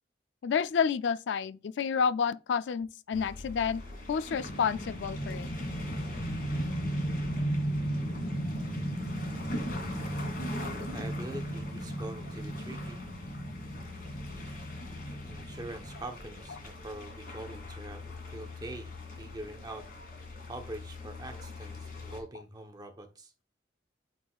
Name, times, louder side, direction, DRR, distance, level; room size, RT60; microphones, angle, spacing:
voice 1, 0.4-3.8 4.1-5.5, left 6 dB, 80° left, 0.4 m, -29 dB
sound 1, 3.1-22.2, left 2 dB, 55° left, 2.4 m, -43 dB
sound 2, 4.4-16.6, right 1 dB, 35° left, 1.7 m, -36 dB
voice 2, 10.9-13.0 15.2-19.8 20.4-23.3, right 1 dB, 20° right, 0.9 m, -44 dB
9.0 x 4.7 x 2.3 m
head